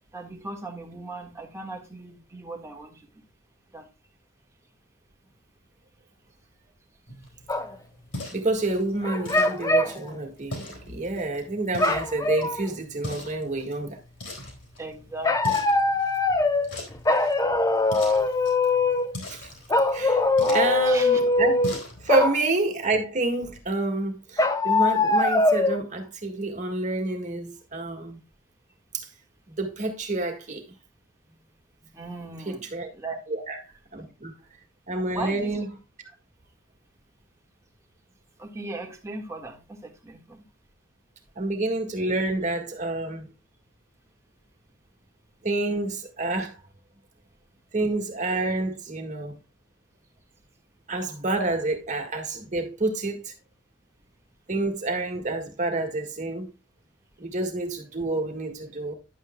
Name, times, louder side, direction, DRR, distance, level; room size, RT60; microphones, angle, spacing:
voice 1, 0.1-3.2 3.7-3.9 14.8-15.6 20.8-21.2 31.9-32.7 32.9-33.2 34.9-35.6 36.0-36.1 38.4-40.4, right 2 dB, 15° right, 1.6 m, -38 dB
sound 1, 7.1-22.3, left 1 dB, 60° left, 3.6 m, -41 dB
sound 2, 7.5-7.7 9.0-10.0 11.8-12.7 15.2-16.7 17.0-19.1 19.7-21.8 22.1-22.4 24.4-25.8, left 2 dB, 15° left, 0.6 m, -22 dB
voice 2, 8.3-14.0 19.3-19.5 19.9-20.2 20.5-21.6 22.0-28.2 28.9-29.1 29.5-30.7 32.4-32.9 33.3-33.6 33.9-34.3 34.9-35.6 41.3-43.3 45.4-46.6 47.7-49.4 50.9-53.3 54.5-56.5 57.2-58.9, right 2 dB, 35° right, 1.7 m, -28 dB
11.0 x 8.2 x 2.2 m
head